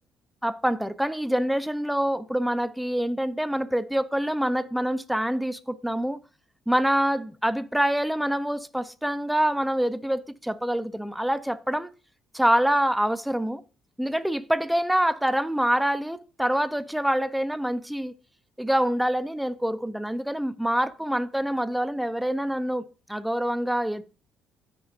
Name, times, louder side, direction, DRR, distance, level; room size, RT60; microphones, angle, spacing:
voice 1, 0.4-6.2 6.7-11.9 12.3-13.6 14.0-18.1 18.6-24.0, equal, 5° right, 0.7 m, -26 dB
16.0 x 6.0 x 2.6 m
supercardioid pair, 75°, 0 cm